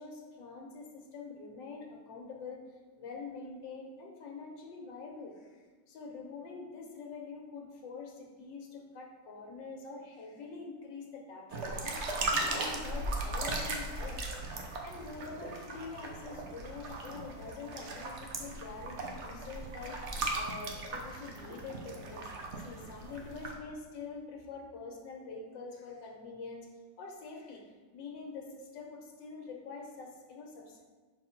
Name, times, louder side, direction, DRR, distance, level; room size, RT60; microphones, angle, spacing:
voice 1, 0.0-2.6 3.0-14.4 14.8-22.3 22.6-26.7 27.0-30.8, left 4 dB, 75° left, 1 dB, 1.6 m, -45 dB
sound 1, 11.5-23.5, right 2 dB, 60° right, 0.7 m, -38 dB
4.3 x 4.1 x 5.6 m, 1.4 s
omnidirectional pair, 2.0 m